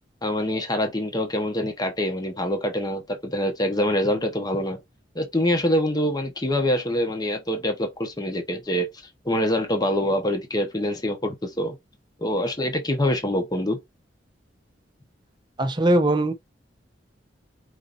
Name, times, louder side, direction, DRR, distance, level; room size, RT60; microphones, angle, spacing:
voice 1, 0.2-4.8 5.1-8.9 9.2-11.8 12.2-13.8, left 1 dB, 20° left, 1.0 m, -25 dB
voice 2, 15.6-16.3, right 1 dB, 25° right, 0.6 m, -20 dB
4.9 x 2.7 x 4.0 m
head